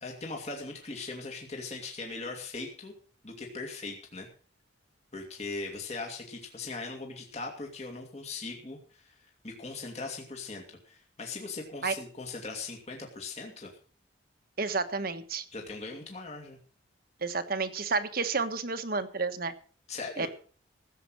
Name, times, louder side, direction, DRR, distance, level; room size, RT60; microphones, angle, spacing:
voice 1, 0.0-2.9 3.2-4.3 5.1-13.8 15.5-16.6 19.9-20.3, left 3 dB, 35° left, 1 dB, 2.4 m, -40 dB
voice 2, 14.6-15.4 17.2-19.5 20.2-20.3, right 4 dB, 50° right, 10 dB, 1.4 m, -30 dB
16.0 x 7.9 x 6.4 m, 0.42 s
head